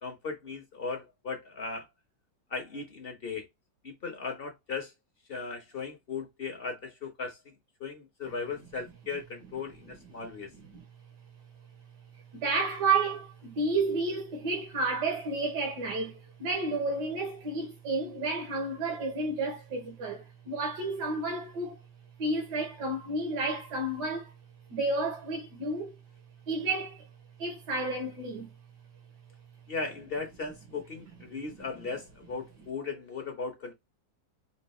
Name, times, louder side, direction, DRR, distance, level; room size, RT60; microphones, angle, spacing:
voice 1, 0.0-1.9 2.5-3.5 3.8-4.9 5.3-7.5 7.8-10.5 29.7-33.7, left 4 dB, 45° left, 0.8 m, -37 dB
voice 2, 12.3-21.8 22.2-24.3 24.7-25.9 26.5-27.1 27.4-28.5, right 3 dB, 65° right, 1.7 m, -31 dB
4.5 x 2.4 x 4.2 m
omnidirectional pair, 2.0 m